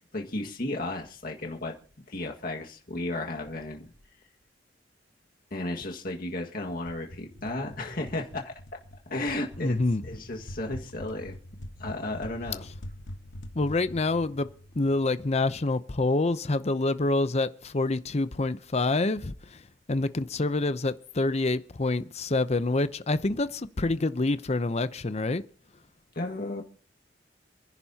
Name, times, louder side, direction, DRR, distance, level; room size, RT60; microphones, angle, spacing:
voice 1, 0.1-1.8 2.1-3.9 5.5-8.5 9.1-11.4 11.8-12.7 26.2-26.6, left 2 dB, 55° left, 1.9 m, -34 dB
sound 1, 6.9-15.5, equal, 85° left, 1.2 m, -45 dB
voice 2, 9.6-10.0 13.5-14.5 14.8-19.6 19.9-25.4, left 2 dB, 35° left, 0.7 m, -27 dB
27.5 x 10.5 x 2.9 m
head